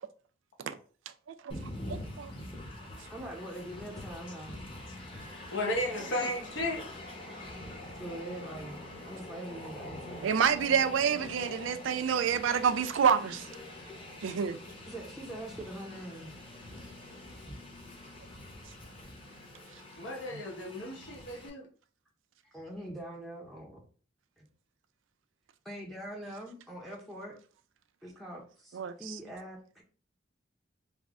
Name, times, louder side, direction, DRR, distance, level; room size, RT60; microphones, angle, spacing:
voice 1, 1.3-2.3 10.2-13.5 14.2-14.6 20.3-20.4 28.7-29.2, right 7 dB, 90° right, 0.3 m, -28 dB
Train, 1.5-21.5, left 1 dB, 30° left, 0.8 m, -45 dB
voice 2, 3.1-4.6 6.2-6.3 8.0-10.3 14.9-16.3 22.4-23.8 24.4-24.5 25.6-27.4 28.0-29.8, right 1 dB, ahead, 0.5 m, -43 dB
voice 3, 5.5-6.8 20.0-21.6, left 1 dB, 80° left, 0.9 m, -34 dB
3.5 x 2.0 x 3.5 m
head